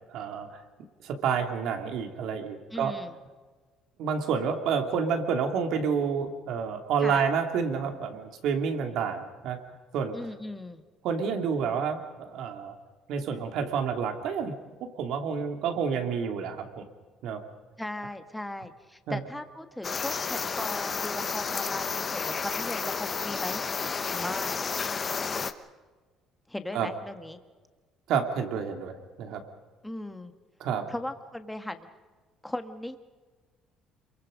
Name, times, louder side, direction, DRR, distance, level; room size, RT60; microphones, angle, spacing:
voice 1, 0.1-0.6 1.0-2.9 4.0-9.6 9.9-10.1 11.0-12.8 13.1-14.5 15.0-16.9 17.2-17.4 19.1-19.2 26.7-26.9 28.1-29.4 30.6-30.9, right 6 dB, 70° right, 5 dB, 2.9 m, -29 dB
voice 2, 2.7-3.2 7.0-7.3 10.1-10.8 17.8-23.6 24.1-24.6 26.5-27.4 29.8-30.3 30.9-31.9 32.4-33.0, left 1 dB, 5° left, 8 dB, 1.6 m, -37 dB
sound 1, 19.8-25.5, left 5 dB, 30° left, 1.2 m, -31 dB
27.0 x 23.0 x 5.2 m, 1.4 s
cardioid pair, 120°, 0 cm